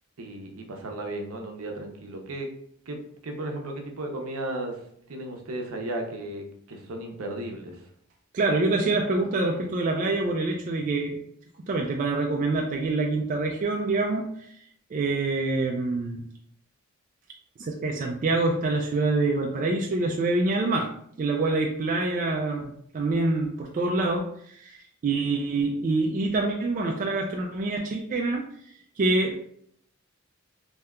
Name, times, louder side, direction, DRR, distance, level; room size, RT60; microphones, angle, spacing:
voice 1, 0.2-2.5 2.9-4.8 5.1-7.8, right 1 dB, 75° right, 3 dB, 0.6 m, -35 dB
voice 2, 8.3-11.2 11.7-14.3 14.9-16.2 17.6-20.9 21.2-24.8 25.0-28.4 29.0-29.4, right 3 dB, 40° right, 0 dB, 0.3 m, -26 dB
3.4 x 2.7 x 2.2 m, 0.67 s
head